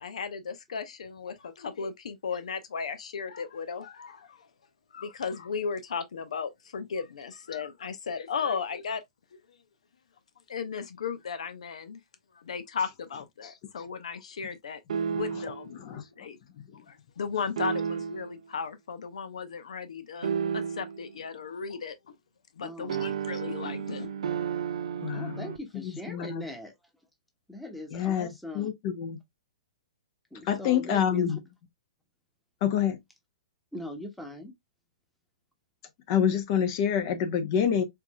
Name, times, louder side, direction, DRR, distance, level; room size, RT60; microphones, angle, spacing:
voice 1, 0.0-4.5 4.9-9.0 10.5-12.0 12.3-14.8 15.1-16.4 16.9-22.0 22.6-24.1, left 6 dB, 80° left, 0.6 m, -35 dB
sound 1, 14.9-15.7 17.6-18.4 20.2-21.1 22.9-25.6, right 7 dB, 75° right, 0.5 m, -32 dB
voice 2, 22.6-23.1 25.1-26.7 27.5-28.7 30.3-31.4 33.7-34.5, equal, ahead, 1.0 m, -40 dB
voice 3, 25.0-25.5 25.8-26.4 27.9-28.3 28.5-29.2 30.5-31.4 32.6-33.0 36.1-37.8, left 9 dB, 45° left, 0.8 m, -27 dB
4.5 x 2.6 x 2.2 m
hypercardioid pair, 135°, 3 cm